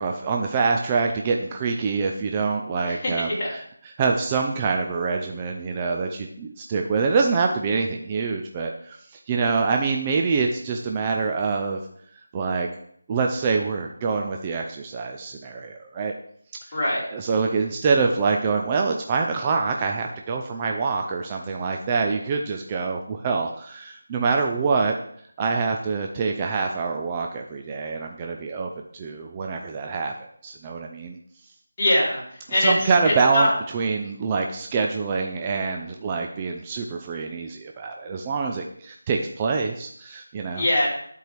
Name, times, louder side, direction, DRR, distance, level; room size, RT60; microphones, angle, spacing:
voice 1, 0.0-3.6 4.0-9.0 9.3-11.8 12.3-12.7 13.1-16.1 17.1-24.9 25.4-30.1 30.4-31.2 32.6-40.6, right 4 dB, 20° right, 2 dB, 0.4 m, -25 dB
voice 2, 2.9-3.5 16.7-17.0 31.8-32.2 32.5-33.5 40.5-40.9, left 1 dB, 25° left, -9 dB, 3.2 m, -22 dB
10.5 x 4.6 x 3.3 m, 0.65 s
figure-of-eight pair, 170°, 0 cm